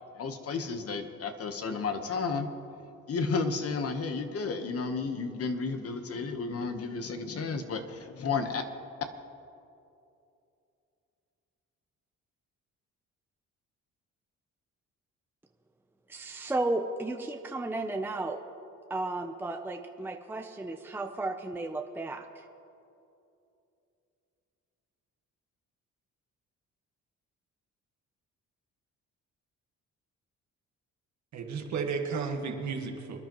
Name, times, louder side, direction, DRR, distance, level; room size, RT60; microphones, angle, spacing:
voice 1, 0.1-2.5 3.1-8.6, left 4 dB, 50° left, 7 dB, 1.1 m, -32 dB
voice 2, 16.1-18.4 18.9-22.5, right 2 dB, 5° right, 5 dB, 0.6 m, -34 dB
voice 3, 31.3-33.2, right 5 dB, 65° right, 3 dB, 1.6 m, -33 dB
24.5 x 10.5 x 3.0 m, 2.7 s
cardioid pair, 90°, 30 cm